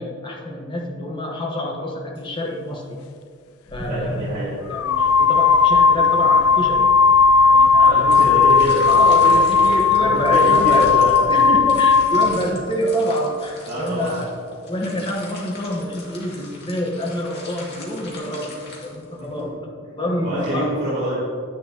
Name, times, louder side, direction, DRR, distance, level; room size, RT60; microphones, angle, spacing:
voice 1, 0.0-3.0 3.7-6.9 7.4-8.1 8.9-10.9 11.3-14.4 14.7-20.7, left 1 dB, 25° left, 0 dB, 1.2 m, -27 dB
sound 1, 3.7-3.9 4.7-12.4, left 5 dB, 85° left, 0.4 m, -15 dB
voice 2, 3.8-4.5 7.7-8.9 9.2-11.1 13.7-14.1 19.2-19.3 20.2-21.2, right 1 dB, 30° right, -12 dB, 2.6 m, -26 dB
sound 2, 8.1-19.4, left 2 dB, 50° left, 2.2 m, -41 dB
10.0 x 10.0 x 3.0 m, 2.2 s
head